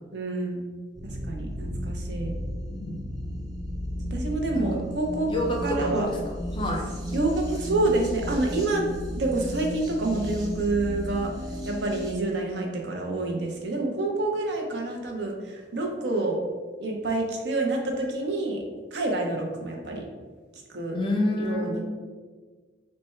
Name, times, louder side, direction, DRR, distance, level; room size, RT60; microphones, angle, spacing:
voice 1, 0.1-0.7 1.2-2.3 4.1-5.3 5.6-6.1 7.1-8.9 9.2-11.3 11.6-16.4 16.8-18.6 18.9-20.1 20.7-21.0 21.4-21.8, right 2 dB, 60° right, 1 dB, 0.6 m, -27 dB
sound 1, 1.0-12.1, equal, 20° right, 0.7 m, -34 dB
voice 2, 2.7-3.0 4.6-4.7 5.3-6.1 6.5-6.8 20.9-21.8, left 1 dB, 25° left, 0 dB, 0.5 m, -28 dB
3.3 x 2.2 x 4.3 m, 1.4 s
head